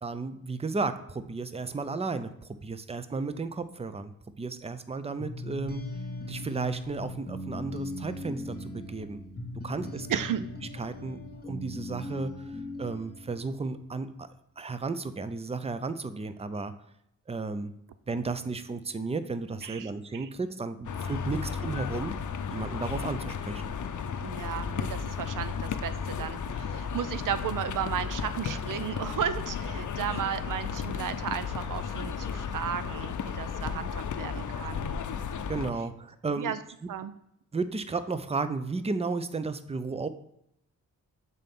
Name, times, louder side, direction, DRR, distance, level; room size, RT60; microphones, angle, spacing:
voice 1, 0.0-4.1 4.4-5.9 6.3-9.2 9.6-10.1 10.8-12.3 12.8-14.3 14.6-16.7 17.3-17.7 18.1-22.1 22.5-23.7 35.5-36.5 36.8-36.9 37.5-40.1, right 3 dB, 20° right, 12 dB, 0.6 m, -33 dB
sound 1, 5.2-13.9, left 2 dB, 30° left, 1.2 m, -39 dB
voice 2, 10.1-10.4 19.6-20.3 24.2-35.0 36.4-36.6 36.9-37.1, right 9 dB, 70° right, 12 dB, 0.5 m, -34 dB
sound 2, 20.8-35.7, left 6 dB, 60° left, 0.6 m, -34 dB
7.3 x 4.0 x 3.6 m, 0.79 s
cardioid pair, 45°, 34 cm